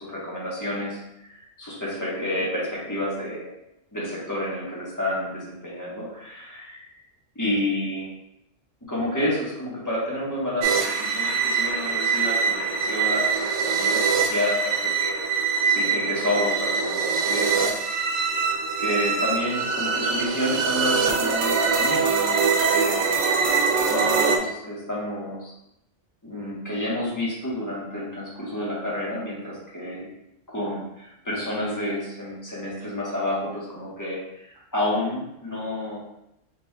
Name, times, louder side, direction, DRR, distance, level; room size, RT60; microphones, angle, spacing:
voice 1, 0.0-3.5 3.9-6.9 7.3-8.1 8.9-15.2 15.7-17.8 18.8-23.1 23.8-25.5 26.2-30.1 30.5-34.4 34.7-36.0, left 1 dB, 15° left, -7 dB, 1.3 m, -30 dB
sound 1, 10.6-24.4, right 5 dB, 75° right, 0.9 m, -23 dB
4.7 x 3.9 x 2.3 m, 0.84 s
omnidirectional pair, 1.3 m